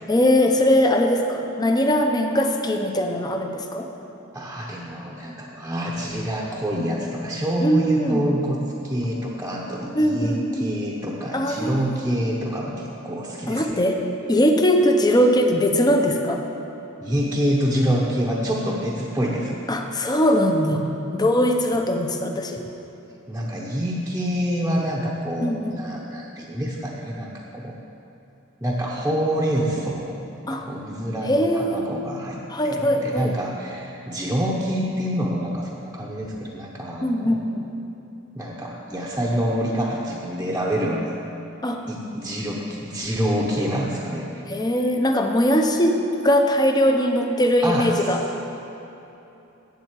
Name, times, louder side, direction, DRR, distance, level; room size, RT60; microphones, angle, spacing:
voice 1, 0.1-3.9 7.6-8.3 9.9-10.8 11.3-11.8 13.5-14.0 14.3-16.4 19.7-20.8 21.1-22.6 25.4-25.8 30.5-30.7 31.3-31.9 32.5-33.3 37.0-37.6 41.6-41.8 44.5-48.2, equal, 20° left, 4 dB, 0.7 m, -21 dB
voice 2, 4.3-13.8 17.0-19.6 23.3-27.7 28.6-30.2 30.5-37.4 38.4-41.2 41.9-44.4 47.6-48.2, equal, 10° right, -5 dB, 0.9 m, -26 dB
7.8 x 7.6 x 8.2 m, 3.0 s
head